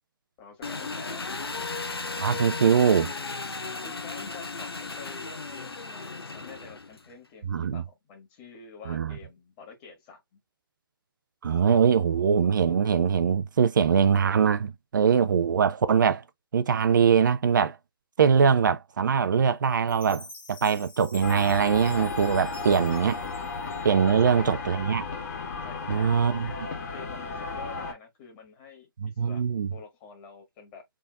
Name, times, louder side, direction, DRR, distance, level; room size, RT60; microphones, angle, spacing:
voice 1, 0.4-1.4 3.8-10.4 24.0-24.8 25.6-26.4 26.9-30.8, left 5 dB, 25° left, 1.6 m, -48 dB
Engine, 0.6-7.1, left 3 dB, 85° left, 0.6 m, -35 dB
voice 2, 2.2-3.1 7.5-7.8 8.9-9.1 11.4-16.2 16.5-17.8 18.2-23.2 23.8-25.0 25.9-26.5 29.0-29.7, right 6 dB, 55° right, 0.5 m, -22 dB
Chime, 19.9-24.2, left 1 dB, 10° left, 1.1 m, -48 dB
sound 1, 21.2-27.9, left 4 dB, 40° left, 1.5 m, -34 dB
4.0 x 3.6 x 2.2 m
figure-of-eight pair, 140°, 12 cm